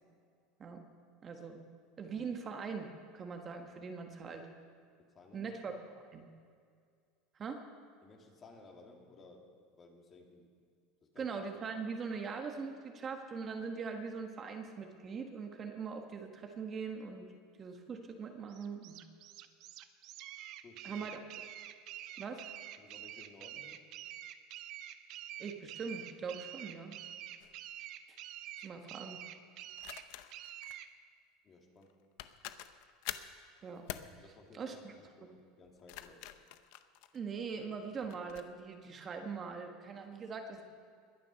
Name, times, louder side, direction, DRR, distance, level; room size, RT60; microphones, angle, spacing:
voice 1, 1.2-1.6 2.0-4.4 5.3-5.8 6.1-6.3 7.3-7.6 11.2-17.3 17.6-19.0 20.8-21.2 22.2-22.5 25.4-26.9 28.6-29.2 33.6-33.8 34.5-34.9 37.1-40.6, right 5 dB, 35° right, 4 dB, 1.5 m, -41 dB
voice 2, 5.1-5.6 8.0-9.5 9.8-10.5 11.1-11.3 20.6-21.1 22.8-23.8 31.4-31.9 34.2-36.2, left 3 dB, 30° left, 1 dB, 2.6 m, -57 dB
sound 1, 18.5-30.9, right 12 dB, 60° right, 0.7 m, -47 dB
sound 2, 27.4-27.6 29.8-30.8 31.8-31.9 32.2-33.4 33.9-34.1 35.6-37.5 38.1-38.5, left 14 dB, 70° left, 0.7 m, -46 dB
21.0 x 7.5 x 5.8 m, 2.2 s
supercardioid pair, 110°, 0 cm